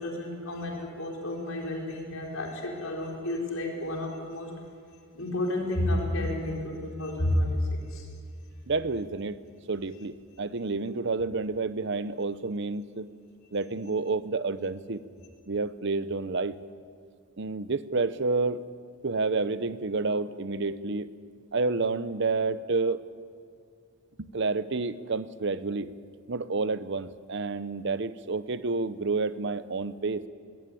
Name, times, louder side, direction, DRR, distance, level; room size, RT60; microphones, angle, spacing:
voice 1, 0.0-4.5 5.1-7.6 7.9-8.1, left 1 dB, 85° left, -1 dB, 4.7 m, -31 dB
voice 2, 8.7-9.4 9.7-13.1 13.5-15.0 15.5-16.5 17.4-18.6 19.0-21.1 21.5-23.0 24.2-25.9 26.3-30.2, right 3 dB, 60° right, 14 dB, 0.8 m, -29 dB
20.5 x 19.5 x 8.5 m, 2.2 s
head